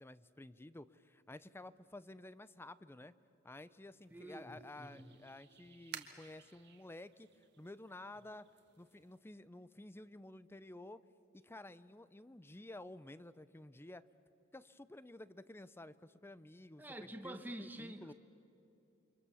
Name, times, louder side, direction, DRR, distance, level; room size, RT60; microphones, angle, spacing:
voice 1, 0.0-3.1 3.4-8.5 8.8-11.0 11.3-14.0 14.5-18.1, left 1 dB, 10° left, 16 dB, 0.5 m, -52 dB
sound 1, 4.0-9.2, right 9 dB, 55° right, 1.5 m, -56 dB
voice 2, 4.1-5.1 16.8-18.1, right 1 dB, 10° right, 6 dB, 1.4 m, -48 dB
29.0 x 25.0 x 7.1 m, 2.8 s
head